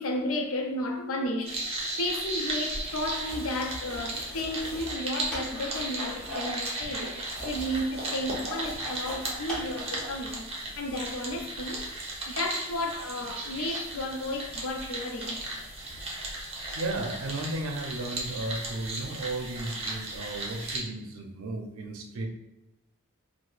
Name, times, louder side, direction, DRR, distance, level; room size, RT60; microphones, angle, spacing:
voice 1, 0.0-11.9 12.3-15.4, left 1 dB, 75° left, 0.6 m, -33 dB
sound 1, 1.5-20.8, right 2 dB, 30° right, 0.7 m, -36 dB
sound 2, 3.2-10.2, equal, 5° left, 1.0 m, -40 dB
voice 2, 16.7-22.3, right 2 dB, 80° right, 0.5 m, -34 dB
4.7 x 2.0 x 2.4 m
head